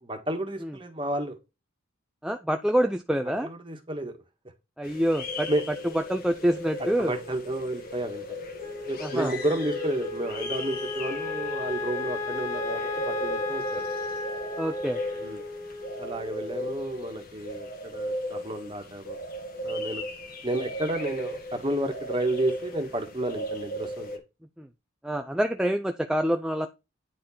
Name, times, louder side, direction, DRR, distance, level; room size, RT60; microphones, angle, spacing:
voice 1, 0.0-1.4 3.2-4.2 5.5-5.6 6.8-8.4 8.9-13.9 15.1-15.4 16.0-19.2 19.6-20.0 20.4-24.2, right 1 dB, 25° right, 4 dB, 1.6 m, -31 dB
voice 2, 2.2-3.5 4.8-5.5 6.1-7.1 9.0-9.3 14.6-15.0 24.6-24.7 25.0-26.7, equal, 5° right, 6 dB, 0.4 m, -26 dB
sound 1, 4.8-24.2, equal, 45° left, 1.5 m, -36 dB
Wind instrument woodwind instrument, 8.6-17.0, left 3 dB, 15° left, 1.4 m, -35 dB
9.5 x 4.4 x 4.3 m, 0.26 s
head